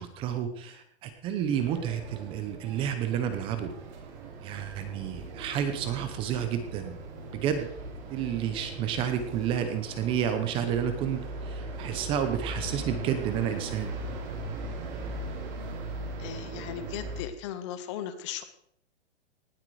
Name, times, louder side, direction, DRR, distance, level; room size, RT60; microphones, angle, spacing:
voice 1, 0.0-3.7 4.4-7.0 7.3-7.7 8.1-13.9, right 9 dB, 15° right, 9 dB, 0.8 m, -30 dB
sound 1, 1.5-17.2, right 2 dB, 40° right, 3.9 m, -39 dB
voice 2, 16.2-18.4, left 9 dB, 25° left, 11 dB, 0.8 m, -37 dB
18.5 x 8.3 x 4.8 m, 0.68 s
hypercardioid pair, 165°, 34 cm